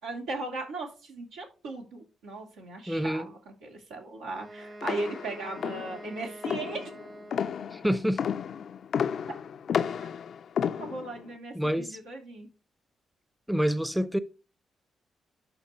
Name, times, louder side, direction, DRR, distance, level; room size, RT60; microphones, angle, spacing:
voice 1, 0.0-6.9 10.8-12.5, right 3 dB, 85° right, 2.8 m, -37 dB
voice 2, 2.9-3.3 7.7-8.2 11.5-12.0 13.5-14.2, equal, 5° right, 0.7 m, -27 dB
Wind instrument woodwind instrument, 4.3-8.0, right 1 dB, 50° right, 1.9 m, -46 dB
sound 1, 4.8-11.3, left 7 dB, 65° left, 0.4 m, -32 dB
12.0 x 4.2 x 3.0 m
hypercardioid pair, 45°, 0 cm